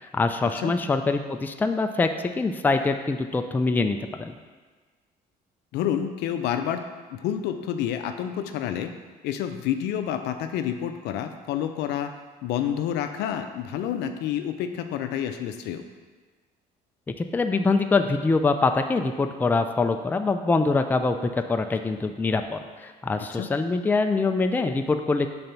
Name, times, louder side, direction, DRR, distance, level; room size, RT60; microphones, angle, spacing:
voice 1, 0.1-2.1 2.4-4.3 17.3-25.3, left 3 dB, 10° left, 6 dB, 0.3 m, -24 dB
voice 2, 5.7-6.8 7.1-8.9 9.2-12.1 12.4-15.8 23.3-23.5, left 10 dB, 85° left, 7 dB, 0.5 m, -29 dB
5.3 x 4.0 x 4.5 m, 1.4 s
cardioid pair, 110°, 17 cm